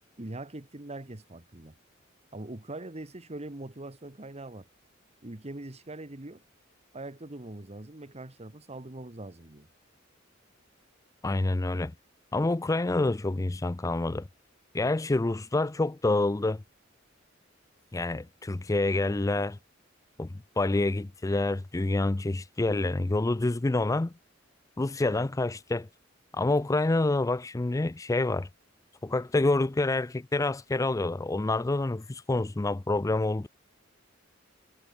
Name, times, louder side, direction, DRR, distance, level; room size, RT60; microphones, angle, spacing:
voice 1, 0.2-1.8 2.3-4.7 5.2-6.4 6.9-9.7, right 2 dB, 35° right, 1.5 m, -42 dB
voice 2, 11.2-11.9 12.3-14.3 14.7-16.6 17.9-19.6 20.2-24.1 24.8-25.9 26.3-28.5 29.0-33.5, left 2 dB, 15° left, 0.4 m, -27 dB
head